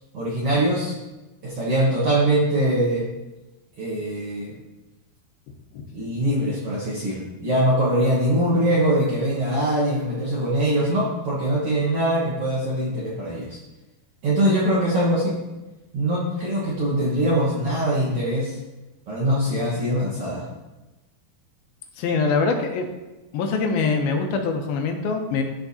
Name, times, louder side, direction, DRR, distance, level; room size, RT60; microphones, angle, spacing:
voice 1, 0.1-0.9 1.4-3.0 3.8-4.6 5.9-13.6 14.2-15.4 15.9-18.6 19.1-20.4, right 1 dB, 55° right, -7 dB, 1.7 m, -22 dB
voice 2, 22.0-22.9 23.3-25.4, left 4 dB, 80° left, 4 dB, 2.6 m, -23 dB
13.0 x 4.5 x 2.7 m, 1.1 s
omnidirectional pair, 4.4 m